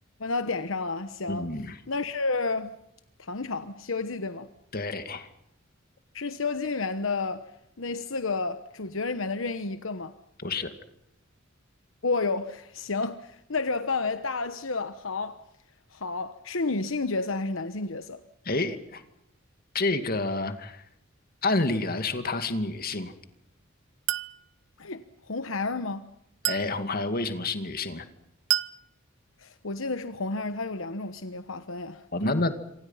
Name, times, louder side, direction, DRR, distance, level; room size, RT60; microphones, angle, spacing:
voice 1, 0.2-1.5 1.9-2.7 3.2-4.5 6.1-10.1 12.0-15.4 15.9-18.2 24.8-26.1 29.4-32.5, left 3 dB, 70° left, 1.1 m, -31 dB
voice 2, 1.3-1.8 4.7-5.3 10.4-10.7 18.5-19.0 19.7-20.8 21.4-23.1 26.4-28.0 32.1-32.5, left 2 dB, 45° left, 2.4 m, -29 dB
Chink clink, 24.1-24.4 26.5-26.8 28.5-28.8, right 12 dB, 65° right, 0.9 m, -28 dB
27.5 x 26.0 x 5.8 m
head